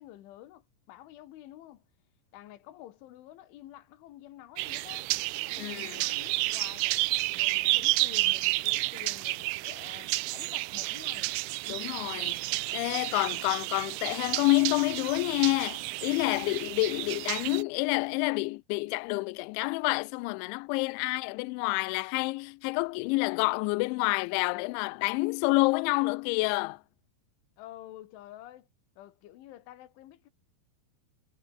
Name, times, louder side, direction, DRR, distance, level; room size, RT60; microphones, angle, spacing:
voice 1, 0.0-1.9 2.3-5.1 5.4-7.1 7.4-11.3 27.6-28.7 29.0-30.3, left 13 dB, 70° left, 4.0 m, -49 dB
sound 1, 4.6-17.6, right 21 dB, 85° right, 2.8 m, -31 dB
voice 2, 5.6-6.0 11.7-26.8, left 25 dB, 90° left, 2.6 m, -28 dB
omnidirectional pair, 5.9 m